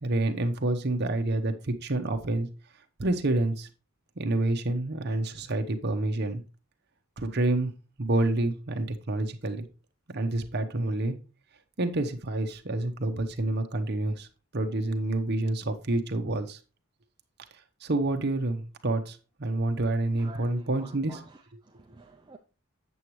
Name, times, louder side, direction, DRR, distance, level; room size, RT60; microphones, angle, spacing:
voice 1, 0.0-2.5 3.0-3.7 4.2-6.4 7.2-7.7 8.0-9.6 10.1-11.2 11.8-14.3 14.5-16.6 17.8-21.2, right 2 dB, 50° right, 0.9 m, -28 dB
voice 2, 20.2-22.4, right 2 dB, 20° right, 0.4 m, -50 dB
8.3 x 7.1 x 3.1 m
head